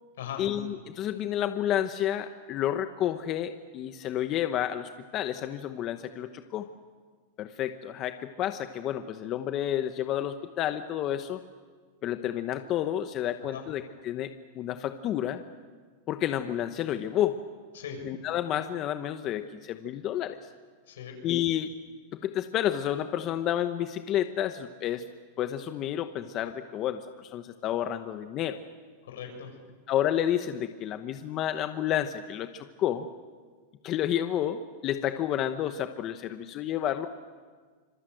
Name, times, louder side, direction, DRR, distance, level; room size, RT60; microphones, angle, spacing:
voice 1, 0.4-6.7 7.4-11.4 12.0-15.4 16.1-17.4 18.0-20.4 21.2-21.7 22.1-25.0 25.4-28.6 29.9-33.1 33.8-37.1, left 11 dB, 35° left, 8 dB, 1.0 m, -30 dB
voice 2, 20.9-21.2 29.0-29.5, left 8 dB, 90° left, 4 dB, 6.7 m, -39 dB
26.5 x 23.0 x 7.9 m, 1.5 s
supercardioid pair, 145°, 0 cm